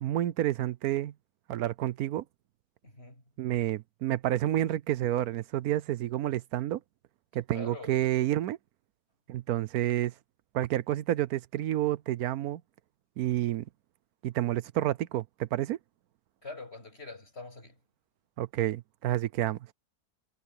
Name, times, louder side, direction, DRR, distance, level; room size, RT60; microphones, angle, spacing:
voice 1, 0.0-1.1 1.5-2.2 3.4-6.8 7.3-8.6 9.3-10.1 10.5-12.6 13.2-13.6 14.2-15.8 18.4-19.6, right 13 dB, 80° right, 1.1 m, -29 dB
voice 2, 2.8-3.2 7.5-8.3 16.4-17.8, left 3 dB, 45° left, 8.1 m, -45 dB
omnidirectional pair, 1.6 m